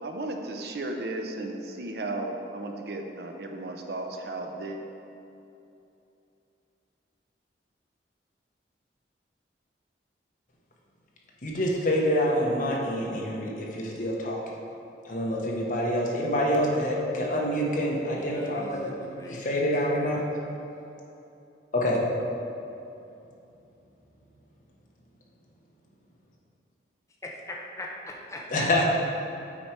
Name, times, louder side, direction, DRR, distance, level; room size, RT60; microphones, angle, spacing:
voice 1, 0.0-4.8, right 2 dB, 60° right, 4 dB, 0.6 m, -34 dB
voice 2, 11.4-14.4 15.0-18.9 19.3-20.2 21.7-22.0 28.5-28.8, equal, 45° left, -2 dB, 1.1 m, -26 dB
voice 3, 18.2-19.6 27.2-27.3 27.8-28.8, left 1 dB, 15° left, -1 dB, 0.5 m, -40 dB
8.5 x 4.5 x 4.5 m, 2.8 s
head